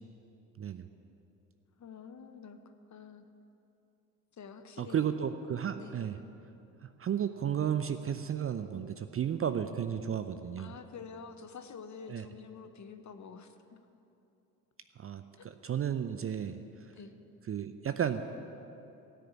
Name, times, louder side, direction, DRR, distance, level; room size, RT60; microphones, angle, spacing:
voice 1, 1.8-3.2 4.3-5.1 5.8-6.0 10.6-13.8 16.9-17.1, left 6 dB, 35° left, 9 dB, 1.1 m, -48 dB
voice 2, 4.8-6.2 6.8-10.7 12.1-12.2 15.0-16.6 17.5-18.4, right 8 dB, 30° right, 10 dB, 0.6 m, -33 dB
16.5 x 6.8 x 8.5 m, 2.8 s
figure-of-eight pair, 50°, 47 cm